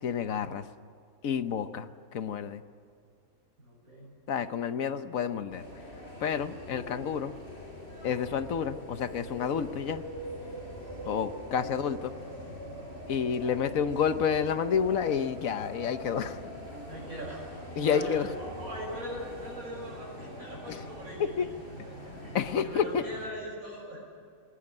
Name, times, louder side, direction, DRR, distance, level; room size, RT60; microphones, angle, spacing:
voice 1, 0.0-0.7 1.2-2.6 4.3-5.6 6.2-7.3 8.0-10.0 11.0-12.1 13.1-16.5 17.7-18.3 20.7-20.8 21.2-21.5 22.3-23.0, left 7 dB, 70° left, 11 dB, 1.3 m, -29 dB
voice 2, 3.6-4.1 11.6-11.7 16.9-17.4 17.8-21.5 21.8-24.0, equal, 75° right, -7 dB, 6.3 m, -41 dB
sound 1, 5.5-23.3, equal, 40° left, 6.2 m, -43 dB
20.0 x 18.5 x 9.8 m, 2.4 s
omnidirectional pair, 1.5 m